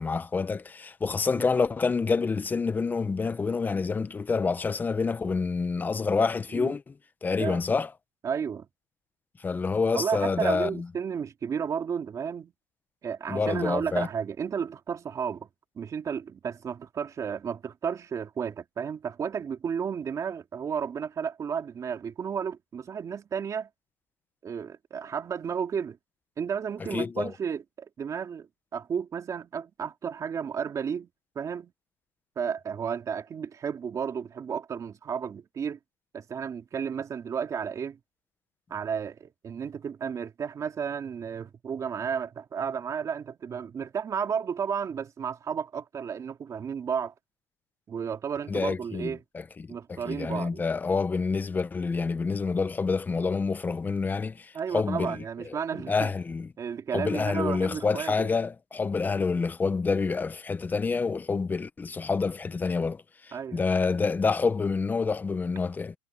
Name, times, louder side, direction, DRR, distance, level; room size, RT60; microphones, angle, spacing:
voice 1, 0.0-6.9 7.2-7.9 9.4-10.9 13.3-14.1 26.9-27.3 48.5-55.2 55.5-55.6 55.9-56.5 56.9-65.9, left 4 dB, 10° left, 0.9 m, -28 dB
voice 2, 8.2-8.7 9.9-12.5 13.0-15.5 15.8-23.7 24.4-26.0 26.4-31.1 31.4-31.7 32.4-35.8 36.1-38.0 38.7-47.1 47.9-49.2 49.7-50.6 54.5-56.1 56.6-58.3 63.3-63.7, right 7 dB, 20° right, 2.5 m, -32 dB
supercardioid pair, 145°, 16 cm